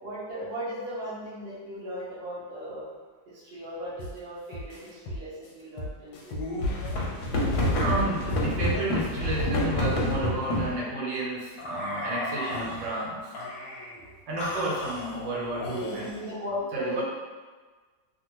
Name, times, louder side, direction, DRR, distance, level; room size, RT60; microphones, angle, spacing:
voice 1, 0.0-2.9 3.3-6.4 14.4-14.6 15.7-17.0, equal, 50° right, -9 dB, 0.8 m, -37 dB
sound 1, 4.0-4.2 4.5-7.0 7.4-9.5, equal, 90° left, 1.3 m, -37 dB
sound 2, 6.3-10.8 11.6-12.9 13.3-13.9 14.4-16.2, left 1 dB, 70° left, 1.0 m, -29 dB
voice 2, 7.8-13.3 14.3-16.1 16.7-17.0, right 2 dB, 85° right, -3 dB, 1.4 m, -31 dB
2.8 x 2.4 x 2.9 m, 1.4 s
omnidirectional pair, 2.0 m